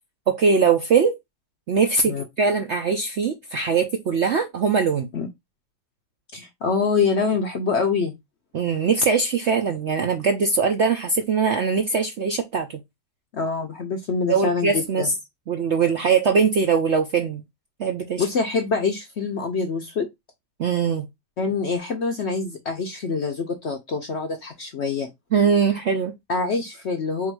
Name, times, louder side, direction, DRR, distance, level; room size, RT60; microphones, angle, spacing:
voice 1, 0.3-1.2 1.7-5.1 8.5-12.8 14.3-15.1 15.5-17.4 17.8-18.3 20.6-21.0 25.3-26.1, right 5 dB, 65° right, 0.7 m, -21 dB
voice 2, 6.3-8.1 13.3-15.1 18.2-20.1 21.4-25.1 26.3-27.3, left 4 dB, 60° left, 0.7 m, -25 dB
3.7 x 2.5 x 4.6 m
omnidirectional pair, 1.8 m